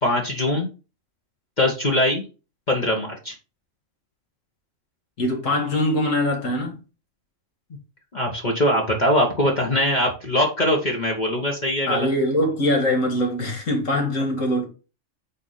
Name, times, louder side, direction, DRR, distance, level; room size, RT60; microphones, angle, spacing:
voice 1, 0.0-0.7 1.6-2.2 2.7-3.3 8.1-12.1, left 1 dB, 35° left, 1.3 m, -22 dB
voice 2, 5.2-6.8 11.9-14.7, left 1 dB, 75° left, 2.3 m, -22 dB
8.2 x 2.8 x 5.5 m
omnidirectional pair, 1.3 m